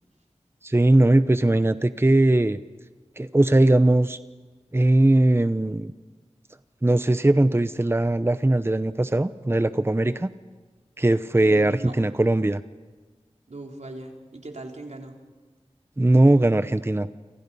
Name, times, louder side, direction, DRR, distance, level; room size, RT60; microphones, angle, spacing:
voice 1, 0.6-2.6 3.2-4.2 4.7-5.9 6.8-10.3 11.0-12.6 16.0-17.1, right 1 dB, 20° right, 12 dB, 0.8 m, -20 dB
voice 2, 11.4-12.0 13.5-15.2, right 2 dB, 85° right, 2 dB, 3.4 m, -39 dB
29.5 x 26.5 x 5.5 m, 1.4 s
wide cardioid pair, 55°, 11 cm